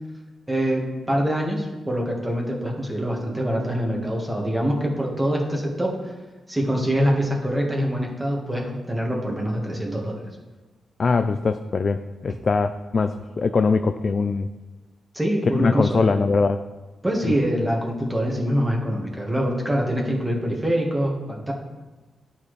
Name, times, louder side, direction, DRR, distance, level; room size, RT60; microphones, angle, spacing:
voice 1, 0.5-5.9 6.5-10.3 15.1-16.1 17.0-21.5, equal, 10° right, -1 dB, 1.6 m, -24 dB
voice 2, 11.0-14.5 15.5-16.6 17.2-17.3, left 4 dB, 45° left, 9 dB, 0.3 m, -22 dB
11.5 x 4.2 x 3.2 m, 1.2 s
cardioid pair, 85°, 0 cm